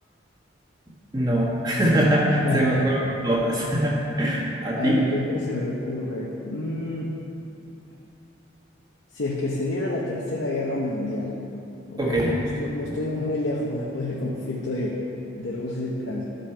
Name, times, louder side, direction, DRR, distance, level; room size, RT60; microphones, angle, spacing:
voice 1, 1.1-5.0 12.0-12.3, right 1 dB, 20° right, -4 dB, 1.4 m, -22 dB
voice 2, 2.4-2.9 4.7-7.2 9.1-11.4 11.9-15.1 15.4-16.3, left 2 dB, 85° left, -4 dB, 0.8 m, -28 dB
12.0 x 5.3 x 4.4 m, 2.9 s
head